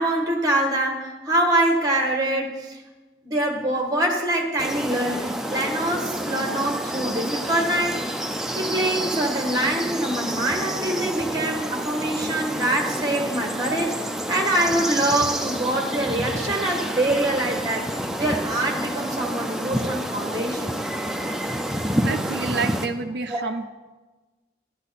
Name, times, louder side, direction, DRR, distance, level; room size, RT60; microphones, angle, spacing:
voice 1, 0.0-2.8 3.2-8.2 8.5-14.0 14.3-17.9 18.2-20.7 23.3-23.4, right 1 dB, 20° right, 2 dB, 1.4 m, -24 dB
sound 1, 4.6-22.9, right 1 dB, ahead, 0.5 m, -29 dB
voice 2, 22.0-23.7, right 4 dB, 65° right, 5 dB, 0.4 m, -28 dB
11.5 x 11.0 x 4.1 m, 1.2 s
head